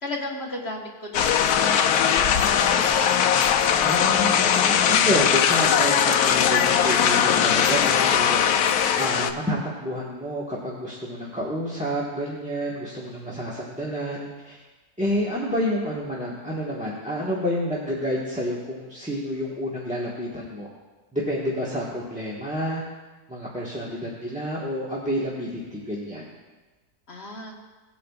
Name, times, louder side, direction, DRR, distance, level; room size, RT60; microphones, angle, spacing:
voice 1, 0.0-2.9 27.1-27.5, left 2 dB, 45° left, -1 dB, 1.6 m, -35 dB
sound 1, 1.1-9.3, left 8 dB, 80° left, 1.1 m, -20 dB
voice 2, 3.7-8.6 9.0-14.6 15.0-20.7 21.1-22.8 23.3-26.2, equal, 5° right, -7 dB, 1.2 m, -29 dB
18.5 x 8.5 x 2.4 m, 1.2 s
omnidirectional pair, 1.6 m